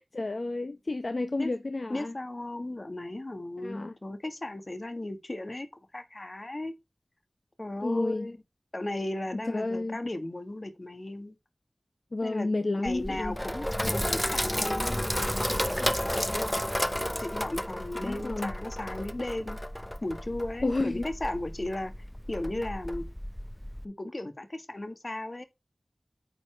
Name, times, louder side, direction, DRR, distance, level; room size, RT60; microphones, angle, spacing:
voice 1, 0.2-2.1 3.6-3.9 7.8-8.3 9.5-10.0 12.1-13.4 18.0-18.5 20.6-21.1, left 2 dB, 65° left, 0.8 m, -31 dB
voice 2, 1.9-5.7 5.9-6.7 7.6-8.4 8.7-11.4 12.2-16.6 17.2-19.6 20.0-21.9 22.3-23.1 23.8-25.4, left 1 dB, 45° left, 1.5 m, -36 dB
Sink (filling or washing), 12.9-23.9, equal, 10° left, 0.6 m, -32 dB
9.4 x 4.1 x 4.4 m
wide cardioid pair, 65°, 0 cm